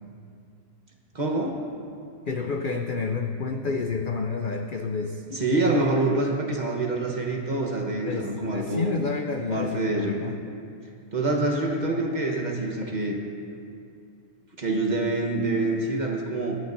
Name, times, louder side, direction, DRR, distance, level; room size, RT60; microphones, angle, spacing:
voice 1, 1.1-1.6 5.3-8.9 9.5-10.2 11.1-13.2 14.6-16.6, right 2 dB, 35° right, 0 dB, 1.1 m, -26 dB
voice 2, 2.3-5.2 8.0-10.4, left 4 dB, 60° left, 4 dB, 0.5 m, -29 dB
24.0 x 8.5 x 2.6 m, 2.5 s
omnidirectional pair, 1.5 m